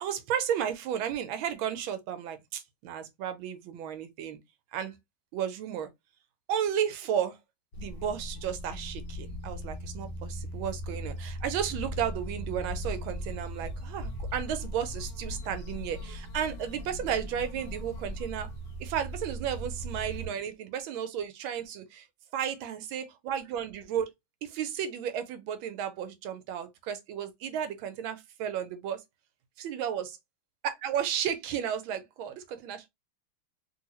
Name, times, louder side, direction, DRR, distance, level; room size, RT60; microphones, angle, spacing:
voice 1, 0.0-4.4 4.7-4.9 5.3-5.9 6.5-7.4 7.8-18.5 18.8-22.0 22.3-24.1 24.4-29.0 29.6-30.2 30.6-32.9, right 9 dB, 80° right, 1.4 m, -33 dB
sound 1, 7.7-20.3, equal, 40° left, 1.0 m, -38 dB
3.4 x 2.6 x 2.9 m
omnidirectional pair, 2.3 m